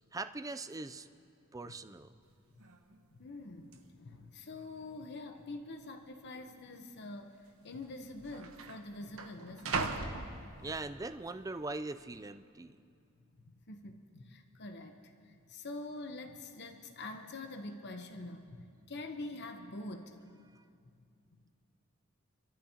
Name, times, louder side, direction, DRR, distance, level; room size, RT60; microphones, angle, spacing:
voice 1, 0.1-1.1 1.5-2.1 10.6-12.8 20.5-20.6, right 3 dB, 15° right, 10 dB, 0.4 m, -41 dB
sound 1, 2.3-2.4 2.6-3.0 3.7-3.8 4.6-5.1 5.3-5.5 6.3-6.5 7.5-7.6 7.8-11.0 11.5-11.9, right 4 dB, 85° right, 1.1 m, -40 dB
voice 2, 3.1-7.4 7.6-10.2 13.7-20.3 21.3-21.4, left 2 dB, 55° left, 5 dB, 0.9 m, -45 dB
28.5 x 13.0 x 2.9 m, 2.5 s
head